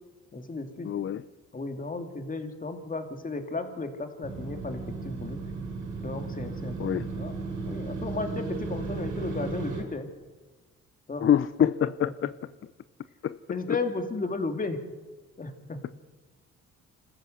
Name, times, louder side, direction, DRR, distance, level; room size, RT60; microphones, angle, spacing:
voice 1, 0.3-0.9 1.5-5.4 6.0-7.4 7.7-10.1 11.1-11.3 11.6-11.7 13.5-14.8 15.4-15.9, left 3 dB, 25° left, 6 dB, 2.6 m, -34 dB
voice 2, 0.8-1.2 6.8-7.1 11.2-12.3 13.2-13.4 13.7-13.8, left 9 dB, 45° left, 14 dB, 0.6 m, -25 dB
Motorcycle, 4.2-9.8, right 4 dB, 75° right, 6.8 m, -35 dB
26.5 x 14.5 x 7.8 m, 1.3 s
cardioid pair, 90°, 30 cm